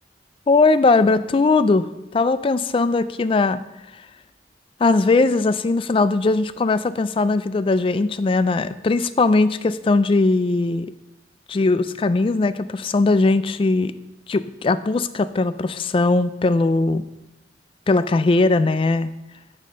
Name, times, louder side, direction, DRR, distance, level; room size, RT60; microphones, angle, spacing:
voice 1, 0.5-1.9 2.1-3.6 4.8-10.9 11.5-13.9 14.3-17.0 17.9-19.1, left 3 dB, 30° left, 14 dB, 0.3 m, -19 dB
9.3 x 6.4 x 3.8 m, 0.95 s
head